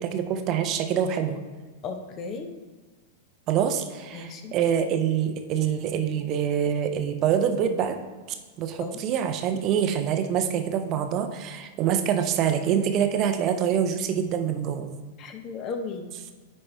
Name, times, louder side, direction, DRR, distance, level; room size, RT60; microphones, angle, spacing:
voice 1, 0.0-1.4 3.5-8.0 8.6-14.9, right 8 dB, 40° right, 7 dB, 0.6 m, -25 dB
voice 2, 1.8-2.5 4.1-4.5 8.8-9.0 15.2-16.1, left 4 dB, 35° left, 6 dB, 0.8 m, -35 dB
9.8 x 4.3 x 3.3 m, 1.4 s
figure-of-eight pair, 95°, 0 cm